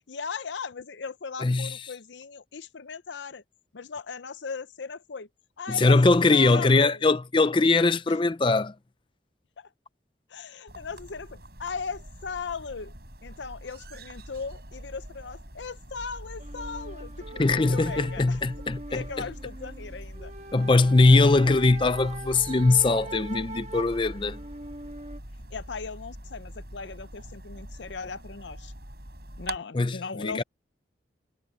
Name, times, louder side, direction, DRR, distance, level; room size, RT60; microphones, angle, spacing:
voice 1, 0.1-3.4 3.7-5.3 5.6-6.0 6.3-7.1 8.1-8.2 9.6-9.7 10.3-12.9 13.2-18.5 18.9-20.3 21.2-21.5 25.5-28.7 29.4-30.4, left 5 dB, 75° left, 0.7 m, -38 dB
voice 2, 1.4-1.8 5.7-8.7 17.4-19.2 20.5-24.4 29.7-30.4, left 3 dB, 25° left, 0.5 m, -21 dB
sound 1, 10.7-29.6, right 1 dB, 55° right, 8.0 m, -43 dB
sound 2, 16.4-25.2, right 2 dB, 40° right, 1.5 m, -42 dB
head